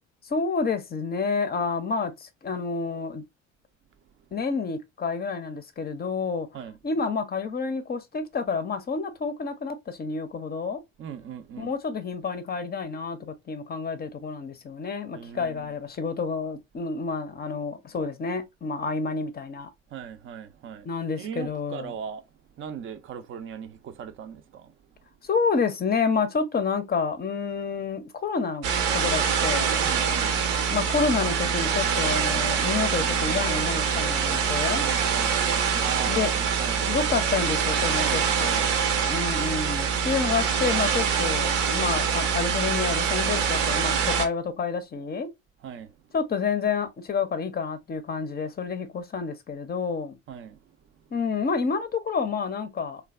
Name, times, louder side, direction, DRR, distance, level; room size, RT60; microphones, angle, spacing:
voice 1, 0.2-3.2 4.3-6.5 6.8-10.8 11.6-19.7 20.8-21.9 25.2-28.7 28.9-29.8 30.7-34.8 36.1-36.3 36.8-38.6 39.1-45.3 46.1-50.2 51.1-53.0, left 5 dB, 25° left, 0.6 m, -29 dB
voice 2, 11.0-11.7 15.1-15.7 19.9-20.9 21.2-22.2 22.6-24.7 29.8-30.4 34.8-35.4 35.8-36.8 38.0-38.7 45.6-46.0 50.3-50.6, right 8 dB, 35° right, 0.5 m, -39 dB
sound 1, 28.6-44.3, right 6 dB, 75° right, 0.7 m, -25 dB
3.1 x 2.3 x 2.2 m
hypercardioid pair, 60°, 38 cm